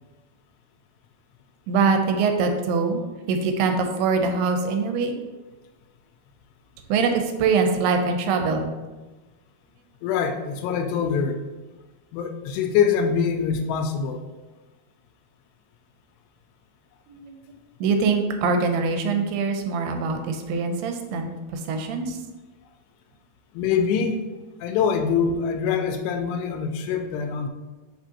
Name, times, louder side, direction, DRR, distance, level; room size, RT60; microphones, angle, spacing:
voice 1, 1.7-3.0 3.3-5.2 6.9-8.7 17.1-17.5 17.8-22.2, right 4 dB, 85° right, 5 dB, 2.6 m, -23 dB
voice 2, 10.0-11.4 12.1-14.2 23.5-24.3 24.6-27.5, left 6 dB, 90° left, 5 dB, 2.7 m, -24 dB
6.1 x 6.0 x 2.8 m, 1.2 s
omnidirectional pair, 4.7 m